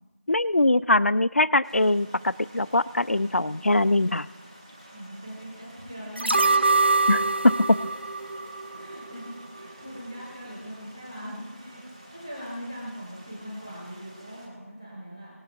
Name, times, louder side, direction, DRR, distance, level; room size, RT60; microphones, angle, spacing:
voice 1, 0.3-4.3 7.1-7.8, left 2 dB, 55° left, 16 dB, 0.4 m, -22 dB
sound 1, 1.6-14.5, right 1 dB, 20° right, 1.7 m, -50 dB
voice 2, 4.9-6.4 8.7-11.8 12.2-15.3, equal, ahead, -12 dB, 1.5 m, -40 dB
sound 2, 6.2-9.3 9.6-9.7, right 3 dB, 45° right, 0.6 m, -24 dB
19.0 x 8.8 x 3.5 m, 1.1 s
figure-of-eight pair, 180°, 8 cm